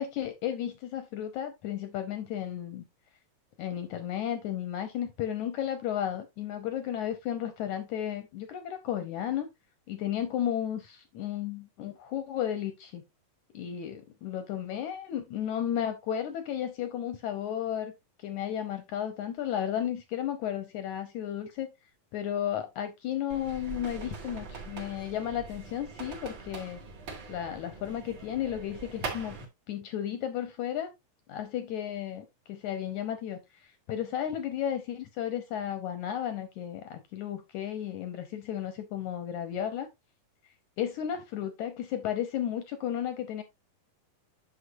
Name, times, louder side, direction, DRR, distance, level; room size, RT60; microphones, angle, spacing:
voice 1, 0.0-2.8 3.6-9.5 9.9-13.0 13.5-17.9 18.2-21.7 22.1-26.8 27.3-29.4 29.7-30.9 31.3-39.9 40.8-43.4, left 10 dB, 75° left, 1.8 m, -33 dB
sound 1, 23.3-29.4, right 4 dB, 40° right, 1.9 m, -42 dB
8.0 x 6.6 x 2.6 m
omnidirectional pair, 4.1 m